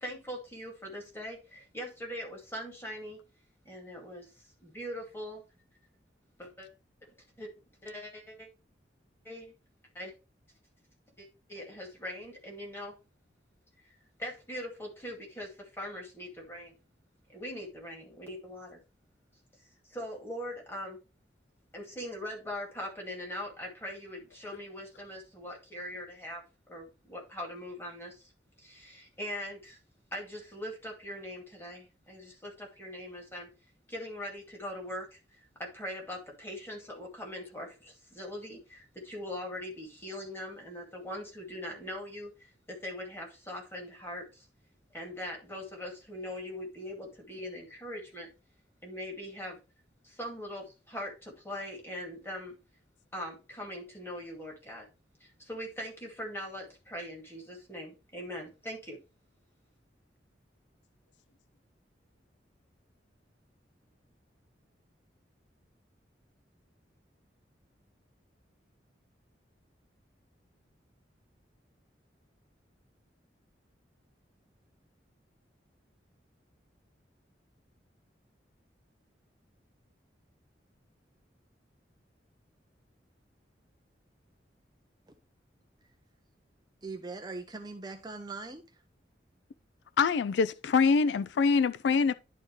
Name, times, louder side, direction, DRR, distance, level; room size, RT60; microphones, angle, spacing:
voice 1, 0.0-3.2 3.6-5.4 6.4-6.7 7.4-7.5 7.8-8.5 9.2-9.5 9.9-10.1 11.2-12.9 13.8-16.8 17.3-18.8 19.9-21.0 21.7-26.4 26.7-28.3 28.6-29.8 30.1-33.5 33.9-44.5 44.9-48.3 48.8-49.6 50.0-52.6 53.1-54.9 55.2-59.0, equal, 15° left, 2.4 m, -41 dB
voice 2, 86.8-88.8, right 3 dB, 20° right, 0.7 m, -41 dB
voice 3, 90.0-92.1, left 5 dB, 70° left, 0.3 m, -25 dB
11.0 x 4.3 x 3.2 m
head